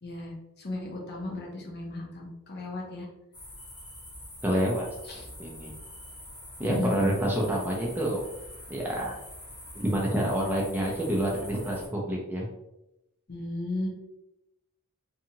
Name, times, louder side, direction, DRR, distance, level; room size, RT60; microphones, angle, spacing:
voice 1, 0.0-3.1 5.0-5.3 6.6-7.1 13.3-13.9, left 2 dB, 45° left, -1 dB, 0.7 m, -35 dB
sound 1, 3.3-11.9, left 1 dB, 20° left, 0.9 m, -45 dB
voice 2, 4.4-4.9 5.4-5.7 6.6-8.2 8.7-9.1 9.8-12.5, right 1 dB, 10° right, -3 dB, 0.4 m, -28 dB
2.7 x 2.4 x 2.8 m, 0.90 s
head